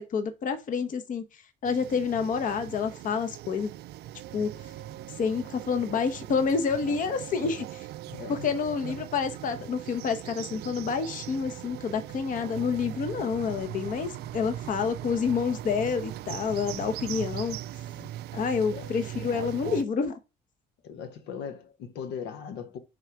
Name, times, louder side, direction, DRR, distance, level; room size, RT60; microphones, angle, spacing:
voice 1, 0.0-3.7 4.3-4.5 5.2-7.9 8.3-17.6 18.3-20.1, left 6 dB, 50° left, 1.0 m, -28 dB
sound 1, 1.6-19.8, right 13 dB, 75° right, 0.4 m, -40 dB
voice 2, 8.1-8.5 18.0-18.1 18.7-18.9 20.8-22.8, left 7 dB, 85° left, 1.1 m, -39 dB
6.3 x 3.7 x 4.7 m
cardioid pair, 110°, 17 cm